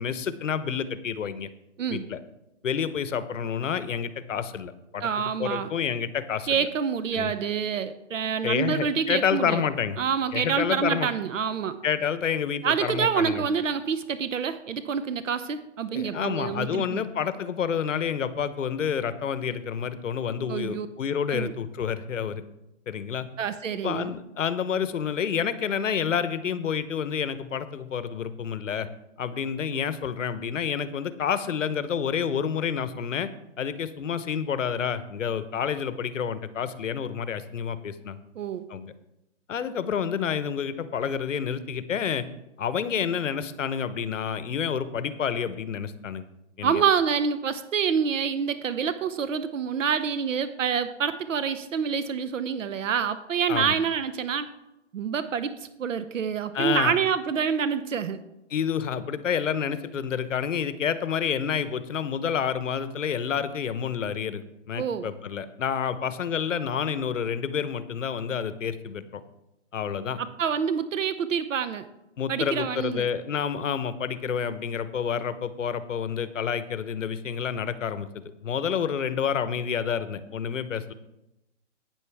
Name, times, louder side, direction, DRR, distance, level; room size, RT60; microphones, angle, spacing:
voice 1, 0.0-1.5 1.9-2.2 2.6-5.1 5.4-6.7 7.1-7.3 8.4-10.0 10.3-11.1 11.8-13.4 15.9-22.4 22.9-23.3 23.8-28.9 29.2-33.3 33.6-38.2 38.7-38.9 39.5-42.3 42.6-46.2 46.6-46.8 53.5-53.7 56.5-57.0 58.5-69.2 69.7-70.2 72.2-80.9, left 7 dB, 80° left, 13 dB, 0.9 m, -29 dB
voice 2, 5.0-5.7 6.5-9.6 10.0-11.8 12.6-17.0 20.5-20.9 21.3-21.5 23.4-24.1 38.4-38.7 46.6-54.5 54.9-58.2 64.8-65.1 70.2-71.8 72.3-73.1, right 7 dB, 80° right, 12 dB, 0.8 m, -27 dB
12.0 x 9.2 x 3.4 m, 0.93 s
hypercardioid pair, 175°, 38 cm